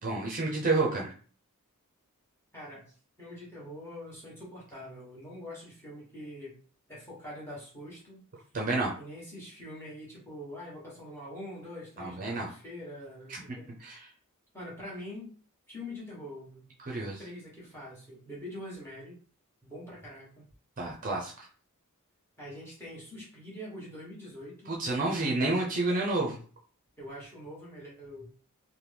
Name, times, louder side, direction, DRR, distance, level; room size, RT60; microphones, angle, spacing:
voice 1, 0.0-1.1 8.5-8.9 12.0-12.5 13.3-13.4 13.8-14.1 16.8-17.2 20.8-21.5 24.7-26.4, right 2 dB, 40° right, -1 dB, 0.5 m, -29 dB
voice 2, 2.5-2.9 3.2-6.6 6.9-8.2 9.0-13.6 14.5-15.3 15.7-16.7 17.2-19.1 19.6-20.4 22.4-24.7 27.0-28.4, left 1 dB, 10° left, -5 dB, 1.3 m, -44 dB
2.9 x 2.1 x 3.3 m, 0.43 s
head